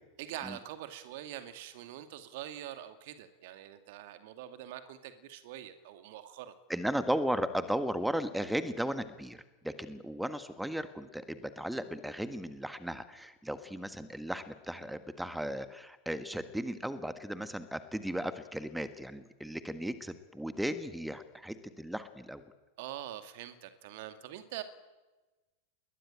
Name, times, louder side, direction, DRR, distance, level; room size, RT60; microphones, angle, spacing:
voice 1, 0.2-6.5 22.8-24.6, right 12 dB, 50° right, 9 dB, 2.5 m, -44 dB
voice 2, 6.7-22.4, equal, 5° right, 12 dB, 1.6 m, -36 dB
29.5 x 21.5 x 8.9 m, 1.1 s
figure-of-eight pair, 90°, 0 cm